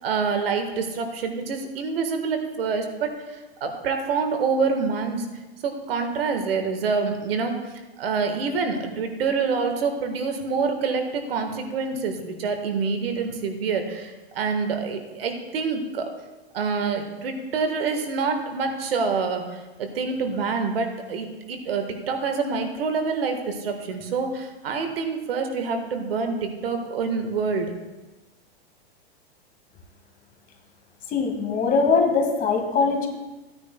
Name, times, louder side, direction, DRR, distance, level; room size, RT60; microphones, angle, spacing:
voice 1, 0.0-5.3 5.6-7.6 8.0-16.1 16.5-27.7, right 5 dB, 70° right, 6 dB, 1.5 m, -26 dB
voice 2, 31.1-33.1, left 4 dB, 25° left, 3 dB, 1.6 m, -21 dB
15.5 x 9.5 x 2.2 m, 1.1 s
hypercardioid pair, 115°, 30 cm